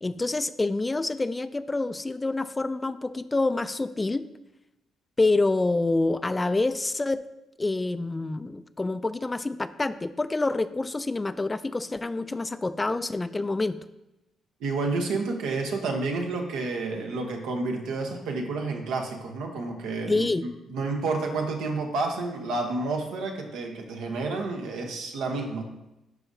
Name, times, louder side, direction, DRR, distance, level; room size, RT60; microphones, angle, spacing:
voice 1, 0.0-4.3 5.2-7.2 7.6-13.8 20.1-20.4, left 2 dB, 20° left, 13 dB, 0.3 m, -27 dB
voice 2, 14.6-20.3 20.7-25.6, right 3 dB, 90° right, 2 dB, 1.1 m, -30 dB
11.5 x 4.9 x 2.7 m, 0.94 s
cardioid pair, 90°, 0 cm